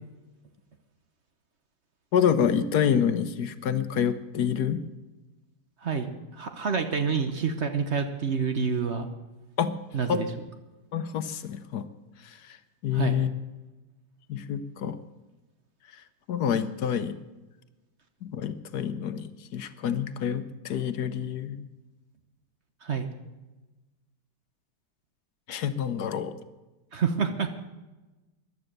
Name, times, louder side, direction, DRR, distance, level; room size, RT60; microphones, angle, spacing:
voice 1, 2.1-4.8 9.6-9.8 10.1-10.2 10.9-11.9 12.2-12.6 12.8-13.3 14.3-15.0 15.9-16.0 16.3-17.2 18.2-21.6 25.5-26.3, left 8 dB, 70° left, 11 dB, 1.3 m, -27 dB
voice 2, 5.8-9.1 9.9-10.3 12.9-13.2 22.8-23.1 26.9-27.5, right 6 dB, 45° right, 7 dB, 1.1 m, -28 dB
14.5 x 11.0 x 6.6 m, 1.1 s
omnidirectional pair, 1.8 m